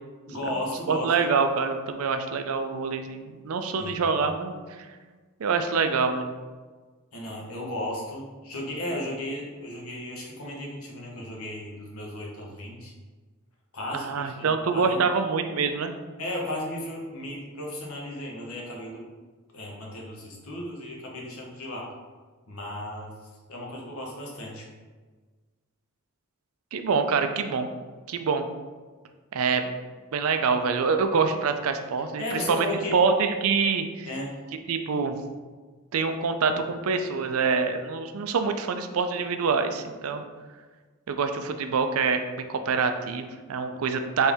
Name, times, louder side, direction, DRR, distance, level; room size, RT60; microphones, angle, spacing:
voice 1, 0.3-1.1 3.8-4.0 7.1-12.9 13.7-15.1 16.2-19.0 19.5-21.9 22.5-23.1 23.5-24.7 32.2-33.0 34.0-34.4, left 1 dB, 80° left, -2 dB, 1.1 m, -35 dB
voice 2, 0.9-4.5 5.4-6.3 13.9-15.9 26.7-27.7 28.1-28.5 29.3-29.7 30.1-32.7 32.9-34.1 34.7-35.2 35.9-40.2 41.1-44.3, right 5 dB, 80° right, 7 dB, 0.4 m, -25 dB
4.3 x 3.3 x 3.5 m, 1.4 s
head